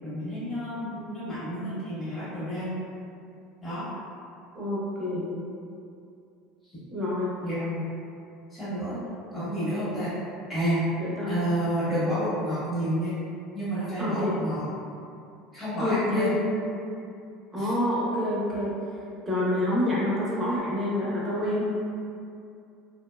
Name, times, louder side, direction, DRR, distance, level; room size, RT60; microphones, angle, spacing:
voice 1, 0.0-2.7 3.6-3.9 6.6-6.8 7.4-7.8 8.5-9.0 9.3-10.1 10.5-10.8 11.3-13.2 13.5-14.7 15.5-16.4 17.6-17.7, equal, 10° left, -14 dB, 1.1 m, -30 dB
voice 2, 4.5-5.4 6.9-7.3 11.0-11.4 14.0-14.3 15.8-16.5 17.5-18.7 19.3-21.6, left 1 dB, 20° right, -8 dB, 0.7 m, -27 dB
2.6 x 2.2 x 2.2 m, 2.5 s
supercardioid pair, 120°, 0 cm